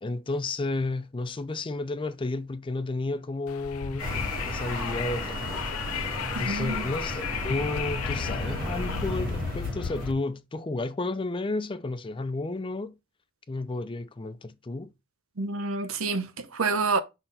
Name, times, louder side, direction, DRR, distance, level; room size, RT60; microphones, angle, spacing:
voice 1, 0.0-4.1 4.5-5.8 6.4-13.0 13.5-14.9, left 2 dB, 25° left, 0.4 m, -32 dB
Wind, 3.5-10.1, left 9 dB, 80° left, 0.4 m, -34 dB
sound 1, 4.0-10.1, equal, 40° right, 3.6 m, -34 dB
voice 2, 6.3-6.9 15.4-17.0, right 3 dB, 75° right, 0.9 m, -28 dB
5.8 x 4.1 x 3.9 m
head